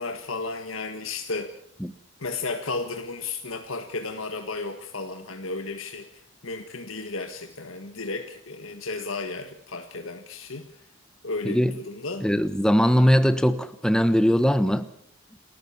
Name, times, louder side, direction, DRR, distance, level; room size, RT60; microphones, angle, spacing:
voice 1, 0.0-1.5 2.2-10.9 11.2-12.2, left 3 dB, 80° left, 5 dB, 1.7 m, -33 dB
voice 2, 12.2-14.9, equal, 5° left, 11 dB, 1.0 m, -20 dB
30.0 x 13.5 x 7.2 m, 0.70 s
head